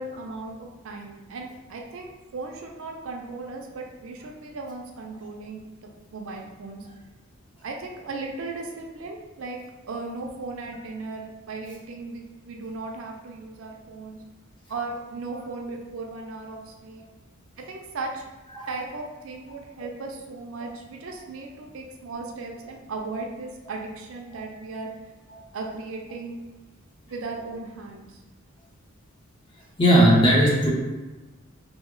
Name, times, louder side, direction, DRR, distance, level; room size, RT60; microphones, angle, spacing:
voice 1, 0.0-6.9 7.6-9.6 9.9-14.2 14.7-17.0 17.6-18.2 18.7-24.9 25.5-26.4 27.1-28.2, right 3 dB, 70° right, 1 dB, 0.4 m, -36 dB
voice 2, 29.8-30.7, equal, 25° left, -5 dB, 0.7 m, -17 dB
3.0 x 2.1 x 3.7 m, 1.1 s
head